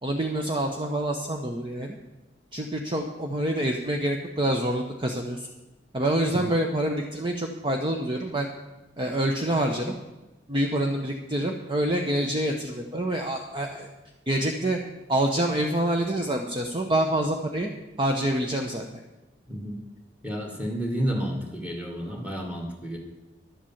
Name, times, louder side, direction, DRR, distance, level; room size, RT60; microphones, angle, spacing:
voice 1, 0.0-2.0 2.5-5.5 5.9-8.5 9.0-10.0 10.5-13.9 14.3-14.8 15.1-17.7 18.0-18.9, right 1 dB, 30° right, 2 dB, 0.9 m, -26 dB
voice 2, 19.5-19.8 20.2-23.0, equal, 10° right, 1 dB, 2.1 m, -31 dB
11.5 x 8.1 x 7.2 m, 1.1 s
head